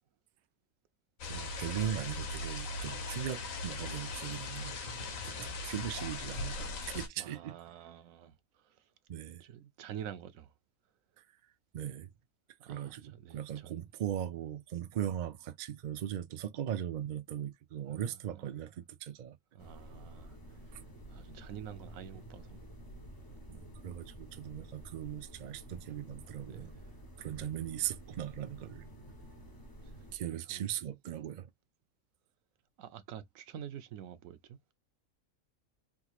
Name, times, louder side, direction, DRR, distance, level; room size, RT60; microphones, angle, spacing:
sound 1, 1.2-7.1, left 3 dB, 80° left, 1.3 m, -39 dB
voice 1, 1.3-7.6 9.1-9.4 11.7-12.1 12.7-19.4 20.7-20.8 23.5-26.7 27.2-28.8 30.1-31.5, right 10 dB, 65° right, 0.4 m, -39 dB
voice 2, 7.2-8.8 9.4-10.5 12.6-13.8 17.9-18.6 19.5-20.8 21.1-22.6 26.5-26.8 29.8-29.9 30.5-30.6 32.8-34.7, right 9 dB, 85° right, 1.0 m, -48 dB
sound 2, 19.6-30.2, right 1 dB, 20° left, 0.7 m, -51 dB
3.6 x 3.0 x 2.3 m
omnidirectional pair, 1.4 m